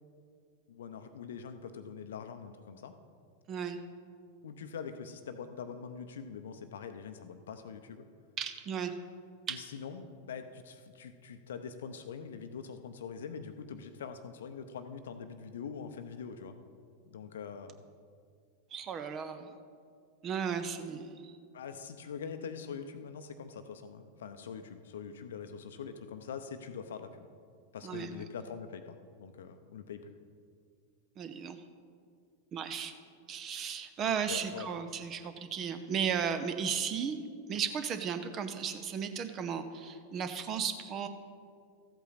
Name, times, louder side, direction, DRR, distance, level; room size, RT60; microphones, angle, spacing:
voice 1, 0.7-2.9 4.4-8.0 9.5-16.5 17.1-17.8 21.5-27.3 27.7-30.1 34.3-34.7, left 6 dB, 60° left, 9 dB, 0.7 m, -43 dB
voice 2, 3.5-3.8 8.4-8.9 9.5-9.6 18.7-19.5 20.2-21.4 27.8-28.2 31.2-31.6 32.5-32.9 33.3-37.2 37.5-41.1, right 7 dB, 30° right, 9 dB, 0.7 m, -35 dB
14.0 x 8.2 x 4.0 m, 2.2 s
figure-of-eight pair, 90°, 0 cm